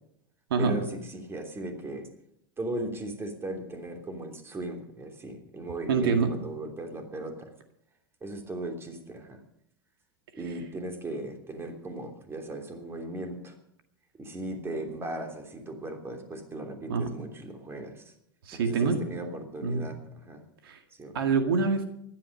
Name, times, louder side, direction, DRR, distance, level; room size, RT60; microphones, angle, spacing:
voice 1, 0.6-2.1 2.6-7.5 8.2-9.4 10.3-13.5 14.2-18.1 18.5-20.4 21.0-21.2, right 1 dB, 20° right, 4 dB, 3.2 m, -37 dB
voice 2, 5.9-6.3 16.9-17.1 18.5-19.0 19.6-19.9 20.6-20.8 21.1-21.8, right 5 dB, 80° right, 6 dB, 2.0 m, -25 dB
15.0 x 12.0 x 6.6 m, 0.72 s
hypercardioid pair, 105°, 12 cm